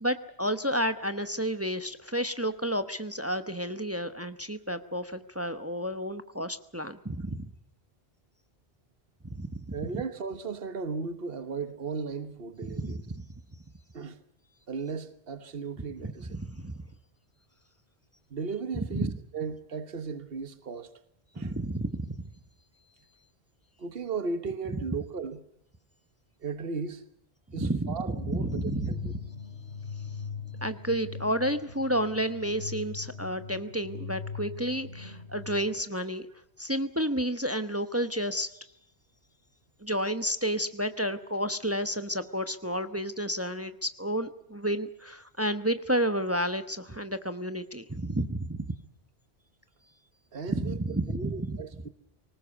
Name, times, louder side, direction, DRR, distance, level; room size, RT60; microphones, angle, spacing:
voice 1, 0.0-7.5 9.3-9.8 12.7-13.0 16.3-16.7 18.9-19.0 21.4-22.0 27.6-28.9 30.6-36.3 36.6-38.5 39.8-48.7 50.6-51.6, equal, 15° right, 1.0 m, -31 dB
voice 2, 9.7-13.0 13.9-14.2 14.7-16.4 18.3-19.1 19.3-20.9 21.3-21.6 23.8-25.4 26.4-27.0 27.5-29.1 50.3-51.9, right 5 dB, 65° right, 1.5 m, -36 dB
sound 1, 28.1-35.7, left 5 dB, 85° left, 3.1 m, -40 dB
24.5 x 19.5 x 8.2 m
omnidirectional pair, 1.1 m